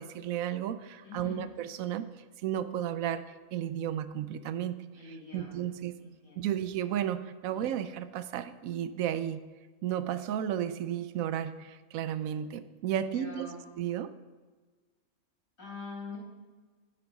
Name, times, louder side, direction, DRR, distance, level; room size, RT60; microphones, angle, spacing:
voice 1, 0.0-2.1 2.4-3.3 3.5-6.0 6.4-9.4 9.8-14.1, right 10 dB, 85° right, 13 dB, 1.0 m, -33 dB
voice 2, 1.0-1.5 4.9-5.6 6.0-6.5 13.0-13.6 15.6-16.2, left 4 dB, 75° left, -3 dB, 3.5 m, -44 dB
9.8 x 7.6 x 5.3 m, 1.3 s
omnidirectional pair, 1.4 m